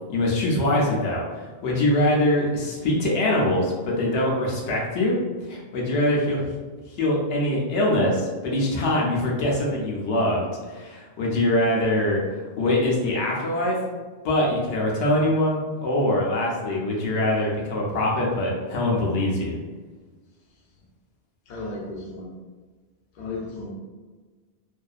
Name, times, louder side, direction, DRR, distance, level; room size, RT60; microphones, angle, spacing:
voice 1, 0.1-5.2 5.4-6.5 6.9-13.8 14.2-19.6, left 1 dB, 80° left, -3 dB, 1.0 m, -23 dB
voice 2, 21.5-22.3 23.2-23.7, left 2 dB, 55° left, -3 dB, 0.6 m, -34 dB
2.6 x 2.3 x 2.3 m, 1.4 s
omnidirectional pair, 1.2 m